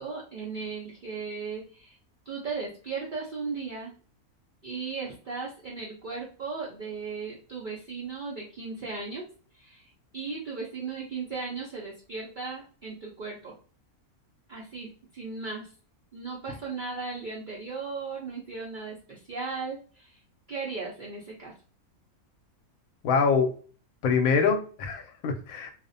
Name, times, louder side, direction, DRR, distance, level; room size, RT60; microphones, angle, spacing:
voice 1, 0.0-2.0 2.3-3.9 4.6-9.3 9.6-9.8 10.1-13.6 14.5-15.7 16.1-20.1 20.5-21.5, right 4 dB, 75° right, -3 dB, 0.4 m, -36 dB
voice 2, 23.0-23.5 24.0-25.7, left 5 dB, 75° left, 5 dB, 0.9 m, -24 dB
2.5 x 2.0 x 2.5 m, 0.40 s
omnidirectional pair, 1.5 m